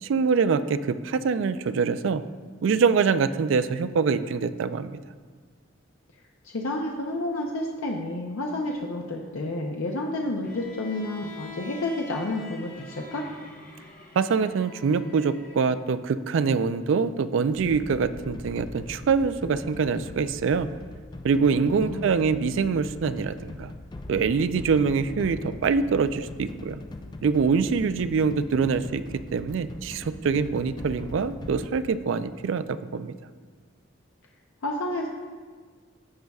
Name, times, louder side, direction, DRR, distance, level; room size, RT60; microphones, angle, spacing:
voice 1, 0.0-2.2 2.6-5.0 14.2-20.7 21.2-23.7 24.1-26.8 27.2-29.0 29.3-33.1, right 5 dB, 70° right, 13 dB, 0.3 m, -24 dB
voice 2, 6.4-13.3 21.8-22.1 34.6-35.1, left 1 dB, 85° left, 0 dB, 0.6 m, -30 dB
Bowed string instrument, 10.4-15.6, left 3 dB, 40° left, 1.1 m, -44 dB
sound 1, 17.5-31.7, left 2 dB, 20° left, 0.3 m, -41 dB
15.0 x 5.3 x 2.3 m, 1.6 s
head